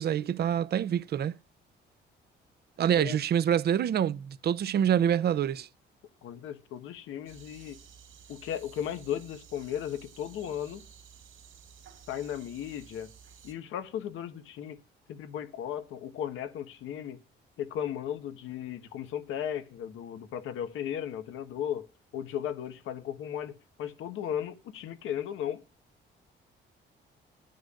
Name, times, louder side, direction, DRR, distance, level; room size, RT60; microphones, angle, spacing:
voice 1, 0.0-1.4 2.8-5.7, right 9 dB, 55° right, 0.6 m, -26 dB
voice 2, 6.2-7.8 8.3-10.8 12.1-13.1 13.4-14.8 15.1-17.2 17.6-21.9 22.1-25.6, left 10 dB, 85° left, 1.3 m, -36 dB
sound 1, 7.3-13.5, right 7 dB, 75° right, 2.8 m, -53 dB
20.5 x 9.3 x 2.5 m
cardioid pair, 90°, 20 cm